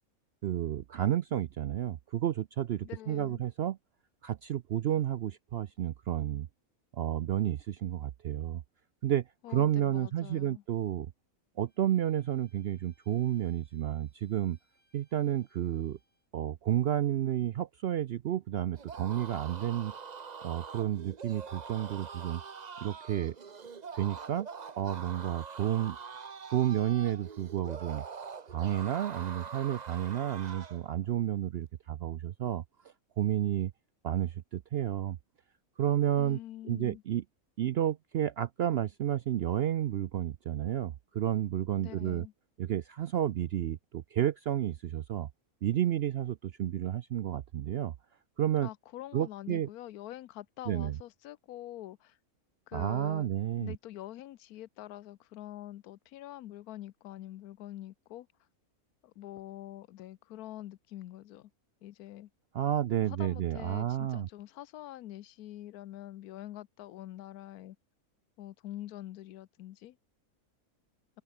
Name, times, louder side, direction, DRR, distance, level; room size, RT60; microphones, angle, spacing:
voice 1, 0.4-3.8 4.2-6.5 6.9-8.6 9.0-11.1 11.6-14.6 14.9-16.0 16.3-19.9 20.4-22.4 22.8-23.3 23.9-24.5 24.8-26.0 26.5-28.0 28.5-32.6 33.2-33.7 34.0-35.2 35.8-36.4 36.6-37.2 37.6-42.3 42.6-45.3 45.6-47.9 48.4-48.7 49.1-49.7 50.7-51.0 52.7-53.8 62.5-64.3, right 11 dB, 65° right, 0.6 m, -31 dB
voice 2, 2.8-3.4 9.4-10.6 36.2-37.0 41.8-42.3 48.6-52.2 52.7-53.3 53.6-58.3 59.0-61.5 61.8-62.3 63.0-67.8 68.4-70.0, left 14 dB, 90° left, 1.2 m, -45 dB
Bowed string instrument, 11.7-16.3, equal, 10° right, 6.3 m, -73 dB
sound 1, 18.8-30.9, right 5 dB, 35° right, 0.9 m, -44 dB
omnidirectional pair, 1.5 m